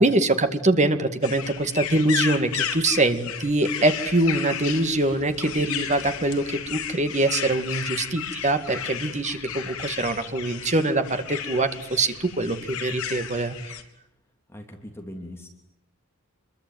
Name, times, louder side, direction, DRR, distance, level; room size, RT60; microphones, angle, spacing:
voice 1, 0.0-13.6, right 2 dB, 30° right, 8 dB, 2.2 m, -23 dB
sound 1, 1.2-13.8, left 8 dB, 75° left, 3.3 m, -33 dB
voice 2, 14.5-15.5, left 1 dB, 10° left, 2 dB, 3.2 m, -40 dB
27.5 x 22.5 x 9.4 m, 0.81 s
head